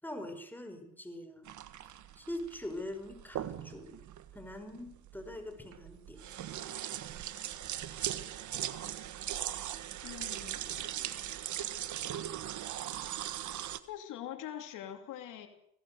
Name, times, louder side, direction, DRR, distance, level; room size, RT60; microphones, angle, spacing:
voice 1, 0.0-1.5 2.2-4.0 4.3-6.2, left 1 dB, 5° left, 6 dB, 5.4 m, -43 dB
sound 1, 1.4-13.8, right 11 dB, 75° right, 1.6 m, -39 dB
voice 2, 10.0-10.9 13.9-15.5, left 11 dB, 90° left, 6 dB, 2.8 m, -43 dB
25.5 x 18.5 x 7.0 m, 0.73 s
cardioid pair, 90°, 30 cm